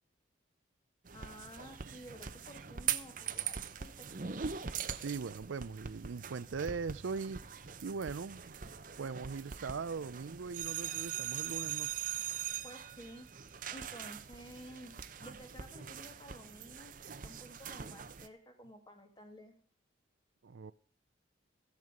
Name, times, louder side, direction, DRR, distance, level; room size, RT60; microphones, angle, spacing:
voice 1, 1.1-4.4 12.6-13.3 13.7-16.9 17.2-19.6, equal, 20° left, 2.1 m, -53 dB
sound 1, 1.1-18.3, right 8 dB, 45° right, 0.8 m, -42 dB
voice 2, 4.9-7.4 7.8-8.5 9.0-11.9 20.4-20.7, right 5 dB, 75° right, 0.5 m, -40 dB
14.0 x 9.5 x 5.1 m
head